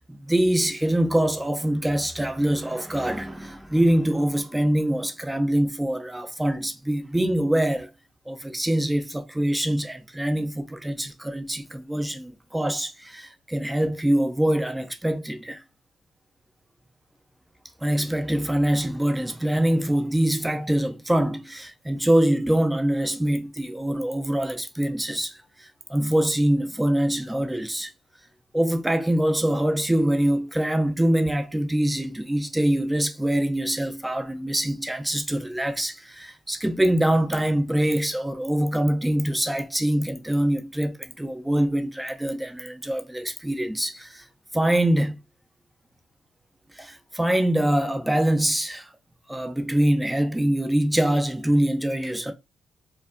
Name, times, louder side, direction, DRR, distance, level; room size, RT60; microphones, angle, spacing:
voice 1, 0.1-7.9 8.3-15.6 17.8-27.9 28.5-44.2 44.5-45.2 46.8-48.9 49.3-52.3, right 1 dB, 10° right, 0.7 m, -24 dB
4.5 x 2.4 x 2.6 m
cardioid pair, 90°, 0 cm